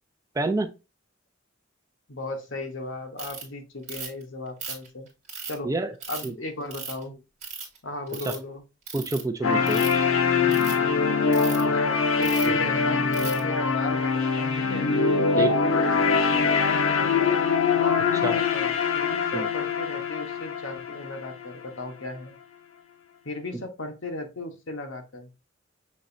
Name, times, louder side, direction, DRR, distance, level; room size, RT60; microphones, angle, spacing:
voice 1, 0.4-0.7 5.6-5.9 6.2-6.3 8.3-8.4 8.9-9.8 12.5-12.6 15.3-15.5 18.2-18.4 19.3-19.5 23.5-23.6, right 2 dB, 15° right, 8 dB, 0.4 m, -28 dB
voice 2, 2.1-5.1 5.5-5.7 6.1-7.2 7.8-8.6 11.2-14.9 15.3-17.4 17.7-22.3 23.2-25.3, left 1 dB, 75° left, 4 dB, 1.1 m, -36 dB
Ratchet pawl, 3.2-3.4 3.9-4.2 4.6-5.5 6.0-6.3 6.7-7.0 7.4-7.8 8.1-8.4 8.9-9.2 9.6-10.0 10.5-10.7 11.3-11.6 12.2-12.5 13.1-13.4, right 5 dB, 40° right, 1.9 m, -36 dB
sound 1, 9.4-21.4, left 5 dB, 90° left, 0.6 m, -23 dB
6.3 x 2.9 x 2.6 m, 0.27 s
head